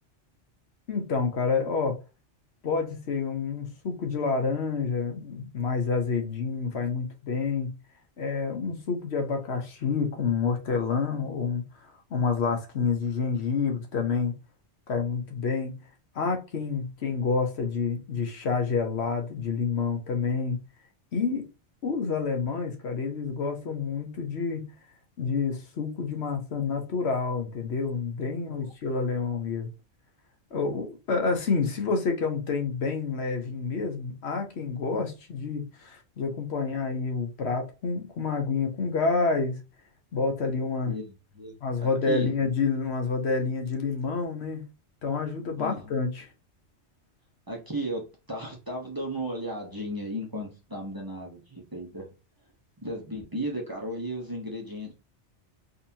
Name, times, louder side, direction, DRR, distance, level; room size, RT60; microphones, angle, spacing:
voice 1, 0.9-2.0 2.6-7.8 8.2-14.3 14.9-15.8 16.1-20.6 21.1-21.5 21.8-24.6 25.2-29.7 30.5-39.6 40.1-40.9 41.6-44.6 45.0-46.3, left 4 dB, 65° left, 1.1 m, -28 dB
voice 2, 40.8-41.6 42.1-42.3 45.6-45.9 47.5-52.1 52.8-54.9, right 1 dB, 20° right, 0.9 m, -35 dB
4.0 x 2.7 x 2.7 m
omnidirectional pair, 1.2 m